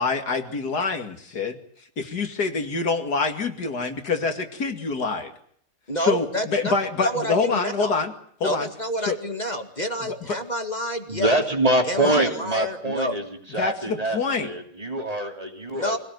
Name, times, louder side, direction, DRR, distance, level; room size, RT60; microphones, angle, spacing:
voice 1, 0.0-1.6 2.0-5.3 6.0-8.1 8.4-8.7 9.0-9.2 10.0-10.4 12.0-12.1 13.6-14.5, left 4 dB, 75° left, 6 dB, 2.9 m, -26 dB
voice 2, 5.9-6.7 7.0-8.0 8.4-11.3 11.8-13.2 15.7-16.0, equal, 25° left, 6 dB, 2.2 m, -28 dB
voice 3, 11.1-16.0, right 1 dB, 20° right, 3 dB, 3.2 m, -25 dB
25.5 x 18.5 x 9.3 m, 0.63 s
omnidirectional pair, 1.7 m